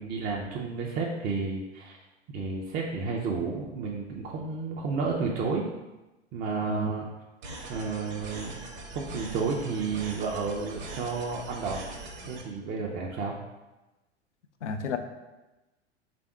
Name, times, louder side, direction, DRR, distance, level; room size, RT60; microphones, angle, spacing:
voice 1, 0.0-2.0 2.3-5.7 6.3-7.1 7.7-8.6 8.9-11.9 12.3-13.3, right 4 dB, 30° right, -1 dB, 0.5 m, -31 dB
sound 1, 7.4-12.4, right 2 dB, 45° right, 0.9 m, -41 dB
voice 2, 14.6-15.0, left 4 dB, 80° left, 7 dB, 0.5 m, -31 dB
3.4 x 2.6 x 4.5 m, 1.1 s
figure-of-eight pair, 85°, 35 cm